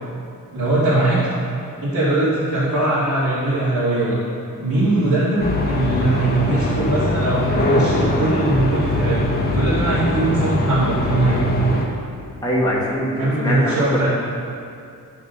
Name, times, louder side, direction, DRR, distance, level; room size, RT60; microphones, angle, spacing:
voice 1, 0.5-1.3 1.8-4.2 4.6-11.5 13.2-14.1, right 2 dB, 65° right, -12 dB, 2.4 m, -20 dB
sound 1, 5.4-11.9, left 2 dB, 25° left, 1.1 m, -22 dB
voice 2, 12.4-14.1, equal, 10° left, -6 dB, 1.7 m, -22 dB
12.5 x 6.4 x 4.0 m, 2.5 s
wide cardioid pair, 155°, 35 cm